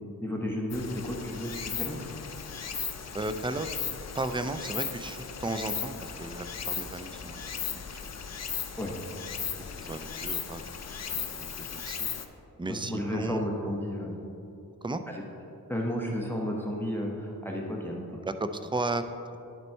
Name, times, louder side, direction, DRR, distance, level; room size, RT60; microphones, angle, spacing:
voice 1, 0.2-2.1 8.8-8.9 12.7-14.1 15.1-15.2 15.7-18.2, equal, 5° left, -1 dB, 0.9 m, -33 dB
Stream, 0.7-12.3, left 6 dB, 45° left, 0.6 m, -37 dB
voice 2, 3.1-3.8 4.1-8.0 9.7-10.7 11.0-12.1 12.6-13.5 14.8-15.0 18.2-19.1, right 2 dB, 15° right, 9 dB, 0.4 m, -35 dB
11.0 x 4.1 x 4.4 m, 2.8 s
cardioid pair, 65°, 38 cm